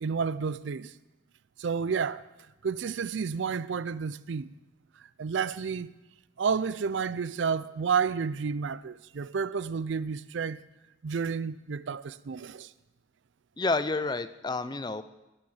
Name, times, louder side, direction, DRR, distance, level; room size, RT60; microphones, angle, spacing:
voice 1, 0.0-0.9 1.6-2.2 2.6-4.5 5.2-5.9 6.4-10.6 11.0-12.7, right 6 dB, 70° right, 0.4 m, -30 dB
voice 2, 13.6-15.0, left 3 dB, 20° left, 0.4 m, -29 dB
18.5 x 7.6 x 7.2 m
head